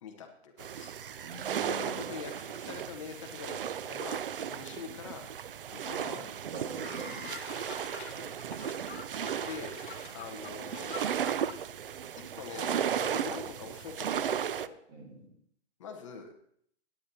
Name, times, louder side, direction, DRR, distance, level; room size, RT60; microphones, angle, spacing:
voice 1, 0.0-1.4 1.7-5.3 5.7-6.3 8.1-9.0 9.4-9.8 10.1-11.0 12.3-14.8 15.8-16.3, left 5 dB, 30° left, 3 dB, 1.1 m, -44 dB
sound 1, 0.6-14.7, right 9 dB, 55° right, 0.4 m, -35 dB
voice 2, 1.2-2.2 5.8-7.2 14.9-15.4, right 2 dB, 20° right, 0 dB, 1.9 m, -45 dB
sound 2, 5.6-11.8 12.7-12.8 13.2-13.3 13.6-14.0, left 6 dB, 45° left, 1.7 m, -50 dB
sound 3, 6.5-6.6 6.9-7.0 7.2-9.1 9.6-11.6, left 8 dB, 60° left, 1.3 m, -47 dB
17.0 x 10.0 x 2.8 m, 0.66 s
hypercardioid pair, 175°, 34 cm